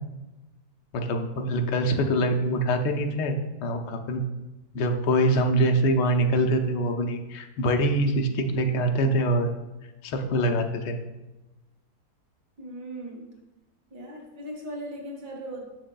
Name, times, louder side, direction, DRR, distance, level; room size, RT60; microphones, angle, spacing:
voice 1, 0.9-3.4 3.6-4.2 4.7-9.5 10.0-11.0, right 1 dB, 85° left, 4 dB, 1.3 m, -24 dB
voice 2, 12.6-13.3 13.9-15.8, right 1 dB, 70° right, -1 dB, 1.8 m, -38 dB
7.2 x 6.3 x 2.3 m, 1.1 s
omnidirectional pair, 1.8 m